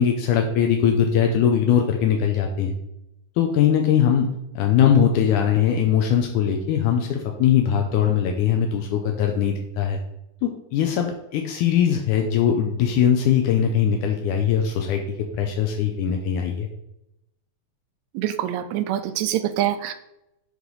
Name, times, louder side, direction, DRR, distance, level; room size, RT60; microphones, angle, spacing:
voice 1, 0.0-2.7 3.4-4.3 4.5-10.0 10.4-16.7, left 8 dB, 80° left, 3 dB, 2.2 m, -21 dB
voice 2, 18.1-19.9, right 12 dB, 80° right, 10 dB, 1.6 m, -25 dB
8.0 x 5.0 x 3.9 m, 0.83 s
omnidirectional pair, 3.6 m